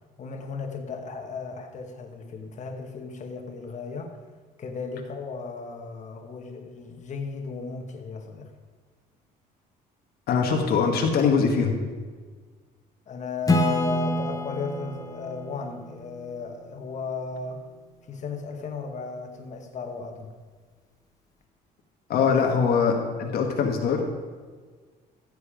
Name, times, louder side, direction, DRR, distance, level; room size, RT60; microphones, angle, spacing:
voice 1, 0.2-4.2 4.6-8.5 13.1-17.7 18.1-20.3, left 4 dB, 45° left, 3 dB, 1.5 m, -35 dB
voice 2, 10.3-11.7 22.1-24.0, left 5 dB, 65° left, 3 dB, 1.4 m, -22 dB
Acoustic guitar / Strum, 13.5-17.0, left 1 dB, 20° left, 1.1 m, -28 dB
15.5 x 6.9 x 5.1 m, 1.5 s
cardioid pair, 110°, 17 cm